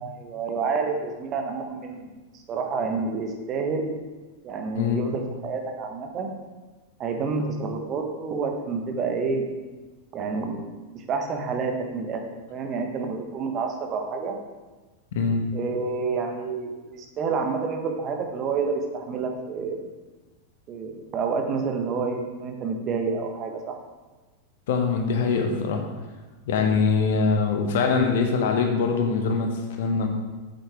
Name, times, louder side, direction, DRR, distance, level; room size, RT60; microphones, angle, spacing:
voice 1, 0.0-2.1 2.5-4.0 4.4-6.3 7.0-9.4 10.1-10.7 11.1-12.2 12.5-14.4 15.5-19.9 20.7-23.8, right 4 dB, 30° right, 3 dB, 1.2 m, -29 dB
voice 2, 15.1-15.4 24.7-25.9 26.5-30.1, left 5 dB, 55° left, 4 dB, 1.1 m, -23 dB
8.3 x 7.7 x 3.5 m, 1.2 s
figure-of-eight pair, 90°, 0 cm